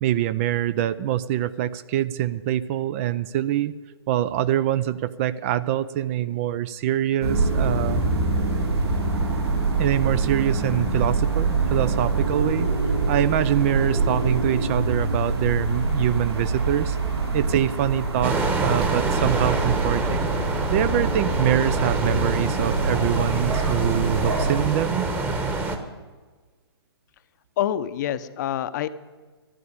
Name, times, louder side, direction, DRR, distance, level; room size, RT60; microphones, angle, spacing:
voice 1, 0.0-3.7 4.1-8.1 9.8-12.7 13.1-17.0 17.3-25.1, right 12 dB, 30° right, 16 dB, 0.5 m, -25 dB
sound 1, 7.2-24.6, right 3 dB, 80° right, 4.1 m, -25 dB
sound 2, 18.2-25.8, right 3 dB, 15° right, 1.2 m, -26 dB
voice 2, 27.6-28.9, left 11 dB, 45° left, 13 dB, 0.8 m, -26 dB
12.5 x 9.9 x 9.7 m, 1.4 s
hypercardioid pair, 140°, 14 cm